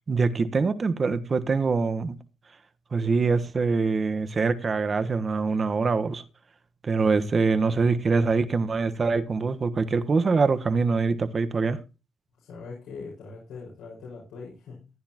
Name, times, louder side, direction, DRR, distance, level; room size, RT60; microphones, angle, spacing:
voice 1, 0.1-2.2 2.9-6.2 6.8-11.8, right 4 dB, 35° right, 1.3 m, -24 dB
voice 2, 12.4-14.9, left 4 dB, 85° left, 5.4 m, -41 dB
15.0 x 10.5 x 3.0 m
cardioid pair, 90°, 0 cm